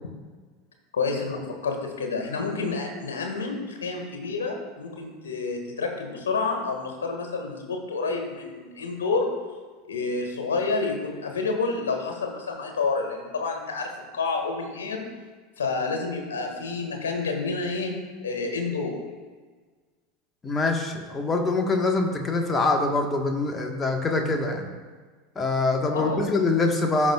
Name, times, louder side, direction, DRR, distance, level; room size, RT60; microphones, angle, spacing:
voice 1, 0.9-9.3 9.8-15.0 15.6-17.9 18.2-19.0 25.9-26.4, left 4 dB, 75° left, 3 dB, 1.6 m, -29 dB
voice 2, 20.4-24.7 25.3-27.1, left 3 dB, 20° left, 3 dB, 1.2 m, -24 dB
14.5 x 6.1 x 2.3 m, 1.4 s
figure-of-eight pair, 80°, 0 cm